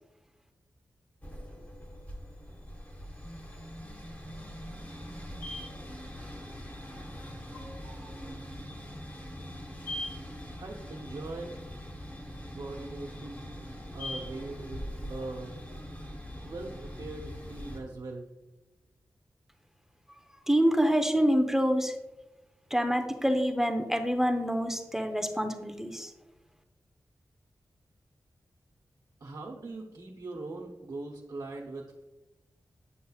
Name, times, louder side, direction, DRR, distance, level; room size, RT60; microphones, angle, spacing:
sound 1, 1.2-17.8, equal, 25° left, 1.6 m, -42 dB
voice 1, 10.6-11.5 12.5-13.5 13.9-15.6 16.4-18.3 29.2-32.1, right 2 dB, 70° right, -3 dB, 0.9 m, -41 dB
voice 2, 20.5-21.9 22.7-26.1, equal, 5° right, 6 dB, 0.6 m, -26 dB
8.6 x 5.4 x 2.4 m, 1.0 s
cardioid pair, 55°, 7 cm